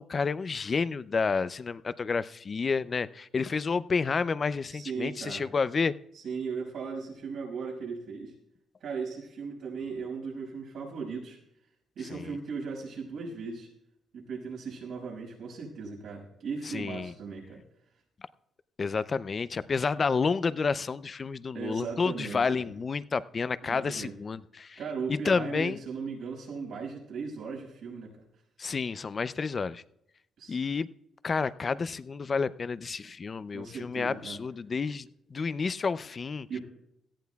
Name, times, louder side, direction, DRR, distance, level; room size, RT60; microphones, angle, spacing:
voice 1, 0.0-5.9 12.1-12.4 16.6-17.1 18.8-24.8 25.1-25.8 28.6-29.8 30.5-30.9 31.2-36.5, left 5 dB, 40° left, 15 dB, 0.5 m, -30 dB
voice 2, 4.7-5.5 6.1-8.3 8.8-11.4 12.0-13.7 14.1-17.6 21.5-22.7 23.6-24.1 24.8-28.1 30.4-30.6 33.5-34.4 36.5-36.6, right 5 dB, 75° right, 0 dB, 6.0 m, -37 dB
17.5 x 14.5 x 2.3 m, 0.80 s
cardioid pair, 90°, 0 cm